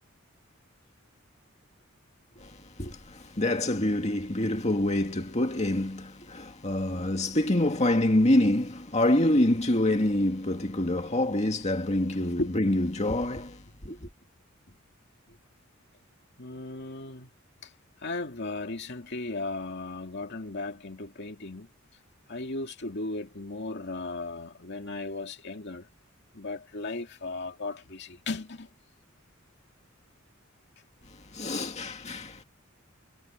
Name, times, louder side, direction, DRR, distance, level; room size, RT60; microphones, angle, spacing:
voice 1, 2.4-14.1 31.3-32.4, left 1 dB, 35° left, 2.1 m, -26 dB
voice 2, 16.4-17.3 17.6-17.7 18.0-21.7 22.3-25.9 26.3-28.7, left 2 dB, 55° left, 2.4 m, -36 dB
head